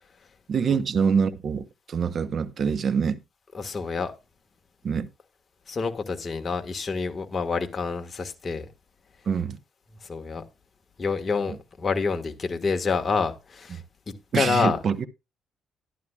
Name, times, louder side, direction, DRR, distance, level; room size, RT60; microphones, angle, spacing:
voice 1, 0.5-3.2 4.8-5.1 9.3-9.6 11.5-11.6 13.7-13.8 14.3-15.1, right 6 dB, 50° right, 0.9 m, -25 dB
voice 2, 3.5-4.1 5.7-8.7 10.1-10.4 11.0-13.8 14.3-14.8, left 5 dB, 35° left, 1.6 m, -27 dB
12.5 x 11.5 x 2.4 m
cardioid pair, 90°, 0 cm